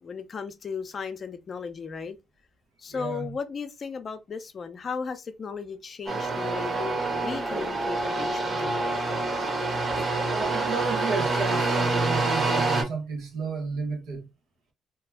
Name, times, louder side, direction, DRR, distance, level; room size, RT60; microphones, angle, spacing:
voice 1, 0.0-2.2 2.8-8.8, left 5 dB, 45° left, 0.6 m, -36 dB
voice 2, 2.9-3.3 10.3-14.3, right 4 dB, 80° right, 1.2 m, -32 dB
sound 1, 6.1-12.8, right 3 dB, 45° right, 1.6 m, -27 dB
2.9 x 2.3 x 3.4 m
cardioid pair, 90°, 0 cm